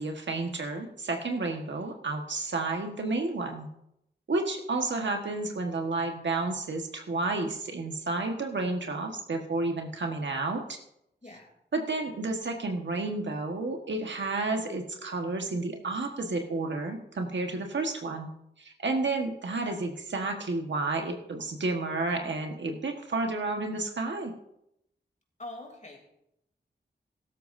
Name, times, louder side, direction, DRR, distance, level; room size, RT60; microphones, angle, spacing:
voice 1, 0.0-3.7 4.3-10.8 11.7-18.3 18.6-24.3, right 3 dB, 90° right, 3 dB, 1.5 m, -31 dB
voice 2, 25.4-26.0, left 2 dB, 40° left, 1 dB, 3.1 m, -43 dB
16.5 x 13.0 x 2.7 m, 0.80 s
wide cardioid pair, 75°, 18 cm